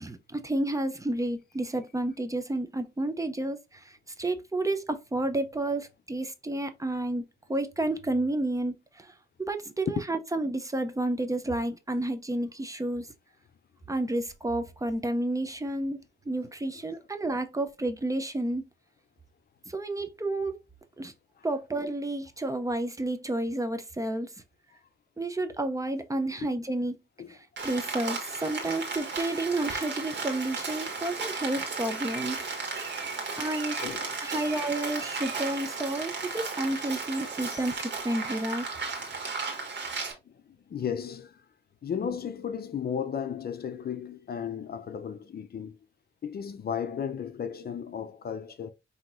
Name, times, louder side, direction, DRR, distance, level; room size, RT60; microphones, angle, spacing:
voice 1, 0.0-7.2 7.5-9.1 9.4-13.1 13.9-16.0 16.3-18.6 19.7-20.6 21.0-21.1 21.4-24.3 25.2-27.0 27.3-32.4 33.4-33.8 34.2-38.7, right 2 dB, 15° right, 0.6 m, -31 dB
Rain, 27.6-40.1, right 4 dB, 65° right, 1.6 m, -35 dB
voice 2, 33.8-34.1 38.9-39.4 40.3-41.4 41.8-45.8 46.2-48.7, left 7 dB, 50° left, 0.6 m, -35 dB
5.7 x 2.8 x 2.5 m
cardioid pair, 100°, 20 cm